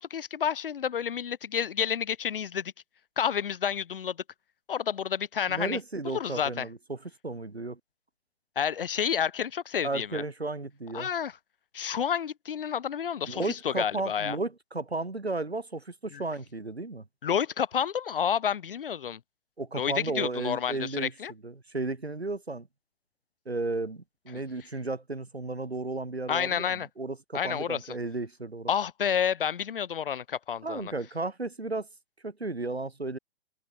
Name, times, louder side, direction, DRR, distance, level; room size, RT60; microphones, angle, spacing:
voice 1, 0.0-2.7 3.2-4.2 4.7-5.8 6.0-6.7 8.6-10.2 10.9-11.3 11.7-14.4 16.1-16.2 17.2-19.2 19.7-21.3 26.3-26.9 27.3-27.8 28.7-30.9, left 8 dB, 60° left, 3.9 m, -30 dB
voice 2, 5.5-7.8 9.8-11.1 13.3-17.0 19.6-21.1 21.4-22.7 23.5-28.7 30.6-31.9 32.2-33.2, right 2 dB, 90° right, 4.5 m, -34 dB
figure-of-eight pair, 125°, 31 cm